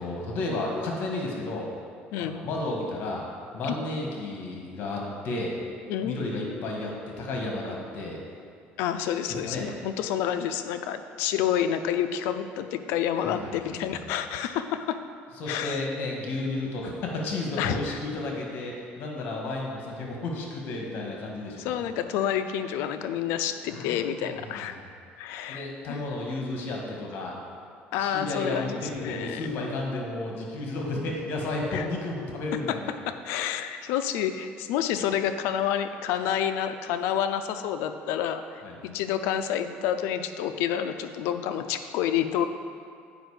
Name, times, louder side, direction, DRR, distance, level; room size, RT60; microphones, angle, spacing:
voice 1, 0.0-1.7 2.2-3.2 3.5-5.6 6.0-8.2 9.3-9.7 13.2-14.2 15.4-21.7 23.7-24.9 25.5-27.3 28.0-32.9 38.6-38.7, left 2 dB, 55° left, -1 dB, 1.5 m, -32 dB
voice 2, 8.8-15.0 15.5-15.9 17.6-18.0 21.6-24.8 25.2-26.1 27.9-29.5 31.7-31.9 33.2-42.5, left 9 dB, 80° left, 9 dB, 0.5 m, -29 dB
8.0 x 5.1 x 4.9 m, 2.4 s
cardioid pair, 135°, 4 cm